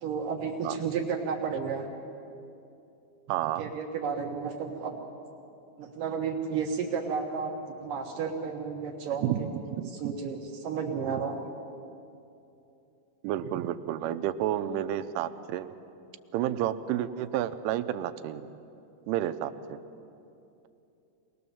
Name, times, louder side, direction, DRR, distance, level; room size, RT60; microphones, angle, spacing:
voice 1, 0.0-1.9 3.6-5.0 5.8-9.5 9.9-11.4, right 6 dB, 65° right, 2 dB, 2.2 m, -32 dB
voice 2, 3.3-3.7 9.2-9.9 13.2-15.7 16.3-18.4 19.1-19.5, right 12 dB, 90° right, 9 dB, 3.2 m, -30 dB
24.0 x 19.0 x 7.1 m, 2.7 s
omnidirectional pair, 5.4 m